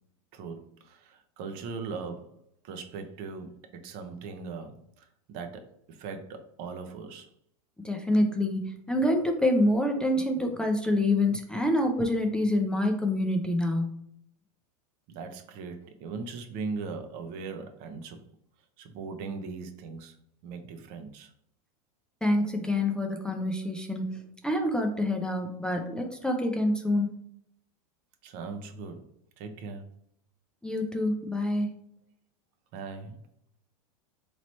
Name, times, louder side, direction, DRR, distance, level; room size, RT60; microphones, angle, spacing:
voice 1, 0.3-5.6 5.9-7.3 15.1-18.2 18.8-20.1 20.4-21.3 28.2-29.1 29.4-29.8 32.7-33.2, right 4 dB, 55° right, 6 dB, 0.7 m, -39 dB
voice 2, 7.8-14.0 22.2-27.1 30.6-31.7, left 1 dB, 5° left, 2 dB, 0.5 m, -27 dB
3.1 x 2.9 x 4.1 m, 0.70 s
hypercardioid pair, 105°, 19 cm